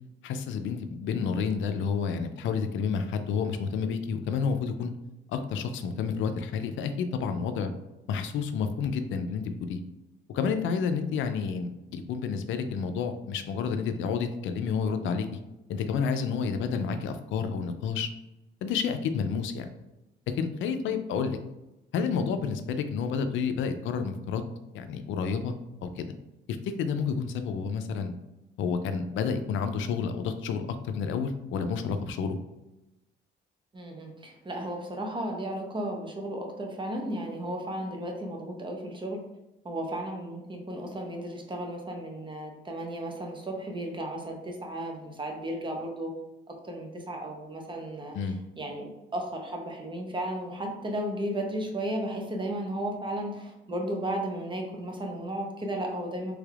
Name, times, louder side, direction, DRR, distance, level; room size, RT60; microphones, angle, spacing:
voice 1, 0.2-4.9 5.3-7.7 8.1-9.8 10.3-15.3 15.7-18.1 18.6-19.6 20.4-21.4 21.9-24.4 24.7-25.5 25.8-26.1 26.5-28.1 28.6-32.4 48.1-48.4, left 6 dB, 75° left, 8 dB, 0.4 m, -30 dB
voice 2, 33.7-39.2 39.6-46.1 46.5-56.3, right 1 dB, 25° right, 2 dB, 0.8 m, -34 dB
3.4 x 3.2 x 2.4 m, 0.97 s
cardioid pair, 90°, 20 cm